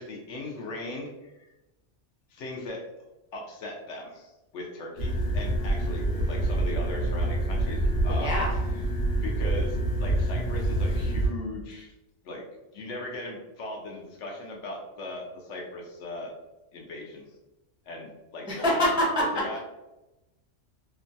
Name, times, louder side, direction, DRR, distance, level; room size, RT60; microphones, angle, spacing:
voice 1, 0.0-1.5 2.3-2.8 3.3-8.6 9.2-11.9 12.2-12.4 12.7-16.3 16.7-17.3 17.9-18.8 19.2-19.6, left 2 dB, 75° left, 0 dB, 1.0 m, -38 dB
sound 1, 5.0-11.3, right 1 dB, 55° left, 1.2 m, -26 dB
voice 2, 8.0-8.5 18.5-19.6, equal, 5° right, -5 dB, 0.4 m, -26 dB
2.9 x 2.2 x 2.6 m, 0.99 s
omnidirectional pair, 1.2 m